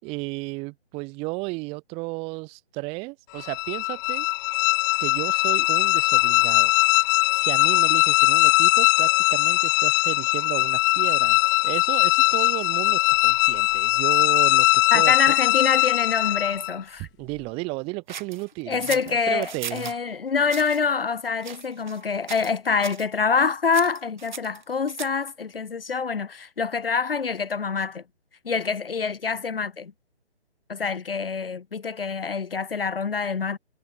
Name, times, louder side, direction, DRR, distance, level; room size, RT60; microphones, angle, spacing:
voice 1, 0.0-4.3 5.0-6.7 7.4-15.1 17.0-19.9, right 26 dB, 15° right, 5.3 m, -33 dB
sound 1, 3.4-16.8, left 23 dB, 15° left, 1.6 m, -20 dB
voice 2, 14.9-17.1 18.7-28.0 28.4-29.9 30.7-33.6, left 5 dB, 60° left, 1.6 m, -26 dB
sound 2, 18.1-20.0 20.5-20.8 21.4-22.0 22.3-22.6 22.8-23.1 23.7-25.3, right 7 dB, 45° right, 5.8 m, -37 dB
figure-of-eight pair, 145°, 33 cm